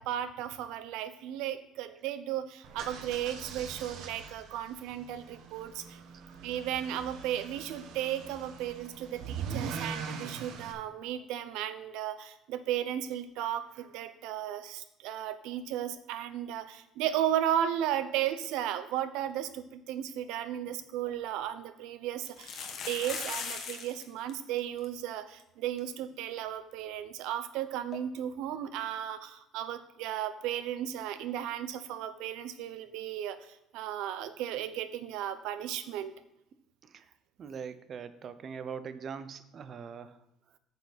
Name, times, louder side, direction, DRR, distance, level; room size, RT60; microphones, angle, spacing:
voice 1, 0.0-6.0 6.4-36.2, right 11 dB, 80° right, 12 dB, 0.7 m, -35 dB
sound 1, 2.6-10.7, right 6 dB, 60° right, 1.0 m, -42 dB
sound 2, 20.7-20.8 21.1-21.2 22.3-24.0 24.3-24.4 24.6-24.9 25.4-25.5 25.8-25.9 27.9-28.0, left 6 dB, 40° left, 1.3 m, -38 dB
voice 2, 37.4-40.2, right 6 dB, 35° right, 12 dB, 0.6 m, -42 dB
9.6 x 6.7 x 4.1 m, 0.85 s
cardioid pair, 165°, 0 cm